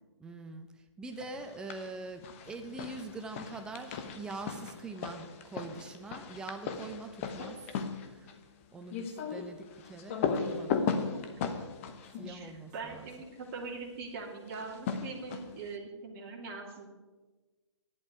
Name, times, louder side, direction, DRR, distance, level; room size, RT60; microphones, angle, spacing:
voice 1, 0.2-0.7 1.0-7.6 8.1-8.3 8.7-10.3 10.6-11.0 12.2-13.1, right 3 dB, 5° right, 7 dB, 0.6 m, -43 dB
sound 1, 1.4-1.9 2.2-13.2 14.5-15.7, left 6 dB, 25° left, 1.0 m, -37 dB
voice 2, 12.3-16.9, right 4 dB, 30° right, -2 dB, 2.4 m, -42 dB
14.5 x 11.0 x 4.8 m, 1.3 s
figure-of-eight pair, 145°, 15 cm